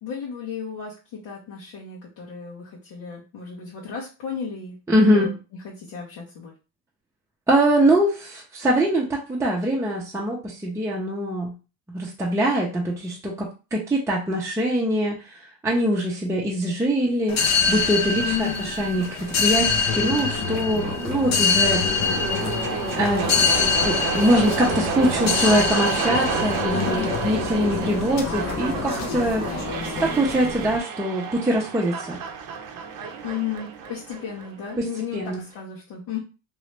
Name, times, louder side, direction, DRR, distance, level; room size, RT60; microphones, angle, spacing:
voice 1, 0.0-4.7 5.1-5.4 5.6-6.5 18.2-18.7 26.7-27.1 33.2-36.2, left 8 dB, 70° left, -6 dB, 1.3 m, -33 dB
voice 2, 4.9-5.3 7.5-11.5 11.9-21.8 22.9-23.5 23.8-29.4 30.0-32.2 34.8-35.4, right 1 dB, 5° right, -4 dB, 0.7 m, -23 dB
sound 1, 17.3-30.8, left 5 dB, 35° left, 0.7 m, -25 dB
sound 2, 19.0-35.0, right 6 dB, 45° right, 0.7 m, -31 dB
3.0 x 2.7 x 3.2 m, 0.31 s
cardioid pair, 115°, 45 cm